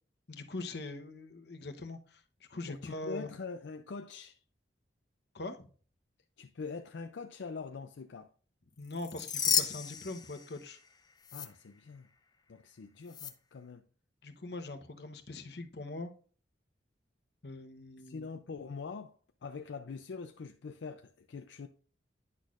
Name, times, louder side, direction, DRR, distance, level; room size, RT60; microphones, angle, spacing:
voice 1, 0.3-3.3 5.3-5.7 8.8-10.8 14.2-16.1 17.4-18.3, left 2 dB, 65° left, 0.9 m, -42 dB
voice 2, 2.7-4.4 6.4-8.3 11.3-12.1 12.5-13.8 18.0-19.1 19.4-21.7, left 4 dB, 80° left, 0.5 m, -43 dB
sound 1, 8.9-10.9 11.2-11.5 13.1-13.3, left 7 dB, 20° left, 0.6 m, -33 dB
9.9 x 6.2 x 2.5 m
head